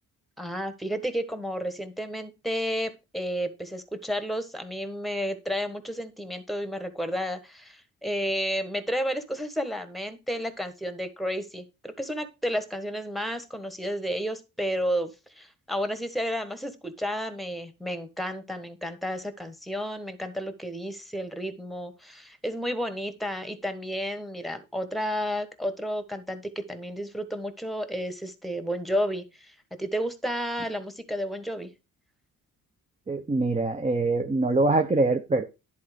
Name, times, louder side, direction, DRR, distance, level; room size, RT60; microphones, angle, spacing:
voice 1, 0.4-31.7, equal, ahead, 11 dB, 1.3 m, -32 dB
voice 2, 33.1-35.4, right 2 dB, 20° right, 4 dB, 0.8 m, -24 dB
10.5 x 4.1 x 5.1 m, 0.27 s
cardioid pair, 95°, 35 cm